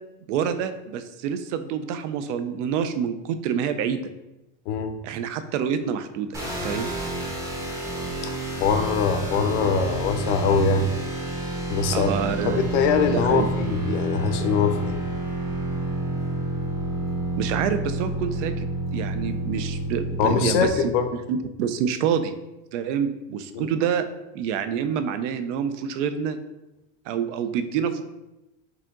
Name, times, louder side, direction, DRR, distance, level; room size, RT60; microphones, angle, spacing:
voice 1, 0.3-4.0 5.0-6.3 6.6-6.9 11.9-12.6 13.1-13.5 17.4-18.7 18.9-20.7 21.3-22.3 22.7-24.1 24.3-26.4 27.1-28.0, right 8 dB, 85° right, 10 dB, 0.6 m, -27 dB
sound 1, 6.3-20.7, right 2 dB, 10° right, 0.6 m, -29 dB
voice 2, 8.6-10.9 11.7-12.2 12.4-15.0 20.2-21.1 23.5-23.7, left 5 dB, 75° left, 7 dB, 0.7 m, -22 dB
4.9 x 2.8 x 3.6 m, 0.98 s
cardioid pair, 165°, 35 cm